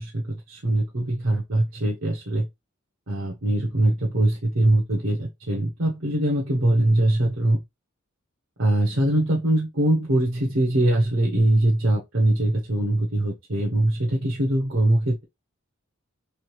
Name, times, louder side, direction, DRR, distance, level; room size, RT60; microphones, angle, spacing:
voice 1, 0.0-2.5 3.1-7.6 8.6-15.2, right 1 dB, 65° right, 0.9 m, -22 dB
3.4 x 3.2 x 3.2 m
head